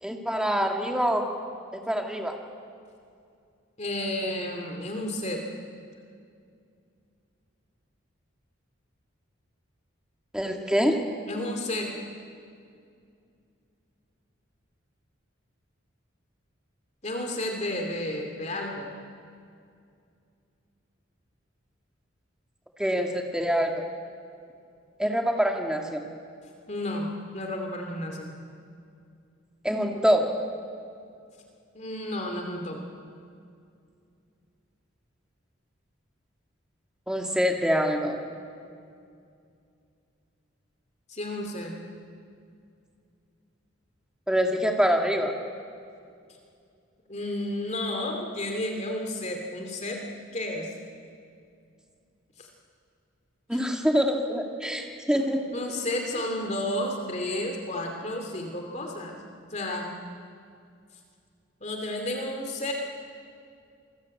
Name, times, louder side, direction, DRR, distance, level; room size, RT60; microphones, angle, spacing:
voice 1, 0.0-1.3 1.7-2.4 10.3-11.0 22.8-23.7 25.0-26.0 29.6-30.3 37.1-38.2 44.3-45.3 53.5-55.4, equal, 5° right, 2 dB, 2.2 m, -25 dB
voice 2, 3.8-5.4 11.3-11.9 17.0-18.9 26.7-28.3 31.7-32.8 41.1-41.8 47.1-50.0 50.3-50.7 52.4-52.5 53.5-53.6 55.5-59.2 59.5-59.9 61.6-62.7, left 1 dB, 35° left, 2 dB, 2.6 m, -32 dB
27.5 x 21.0 x 8.5 m, 2.4 s
head